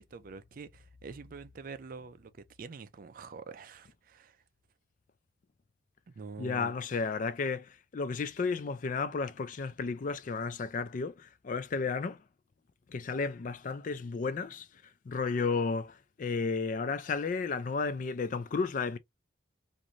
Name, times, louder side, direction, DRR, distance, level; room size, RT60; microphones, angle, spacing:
voice 1, 0.0-2.3 2.6-4.4 6.1-6.7, right 4 dB, 50° right, 0.4 m, -46 dB
voice 2, 6.4-12.2 12.9-14.7 15.1-19.0, left 4 dB, 45° left, 0.4 m, -33 dB
2.5 x 2.5 x 2.8 m
head